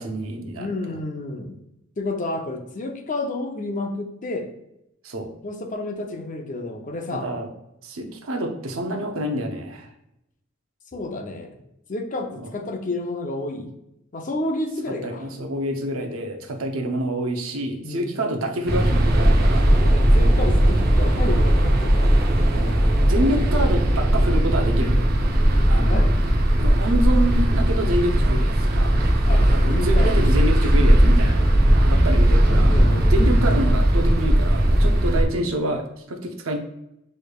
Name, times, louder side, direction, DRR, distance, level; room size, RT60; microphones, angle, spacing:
voice 1, 0.0-1.0 5.0-5.3 7.1-7.5 7.8-9.9 14.9-19.8 22.5-22.8 23.0-25.1 25.7-26.1 26.6-29.0 29.5-31.5 31.8-32.8 33.1-36.6, right 1 dB, 85° right, 4 dB, 0.7 m, -27 dB
voice 2, 0.6-1.6 2.0-4.5 5.4-7.3 10.9-11.5 11.9-13.7 14.1-15.3 17.8-18.1 19.8-22.3 25.5-26.1 29.3-30.5 32.7-33.2, left 2 dB, 40° left, 4 dB, 0.6 m, -30 dB
sound 1, 18.7-35.2, right 1 dB, 50° right, 0.6 m, -18 dB
6.4 x 3.2 x 2.3 m, 0.84 s
head